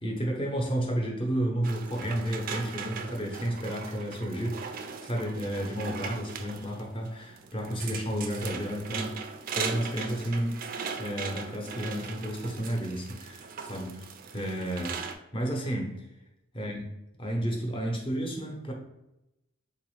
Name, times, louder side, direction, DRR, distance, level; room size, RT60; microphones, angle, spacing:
voice 1, 0.0-9.2 9.5-10.6 11.0-16.1 16.5-16.9 17.2-18.7, equal, 25° left, 0 dB, 0.7 m, -32 dB
sound 1, 1.6-15.1, right 5 dB, 40° right, 0.3 m, -39 dB
3.8 x 2.5 x 3.1 m, 0.90 s
head